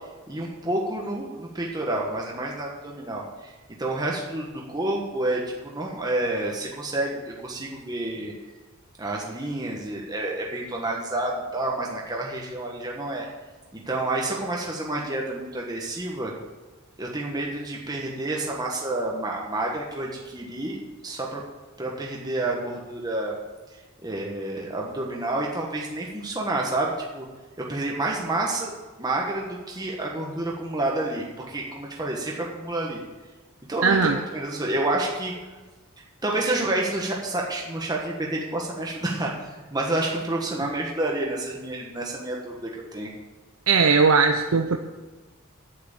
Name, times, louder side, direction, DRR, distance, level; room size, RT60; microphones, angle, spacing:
voice 1, 0.3-3.5 3.8-8.3 9.0-13.3 13.7-16.3 17.0-20.8 21.0-21.4 21.8-23.4 24.0-27.3 27.7-33.0 33.7-35.3 36.2-39.3 39.7-43.1, right 2 dB, 20° right, -2 dB, 1.3 m, -29 dB
voice 2, 33.8-34.2 40.6-40.7 43.7-44.8, right 4 dB, 75° right, 5 dB, 0.6 m, -19 dB
8.8 x 7.8 x 8.3 m, 1.3 s
head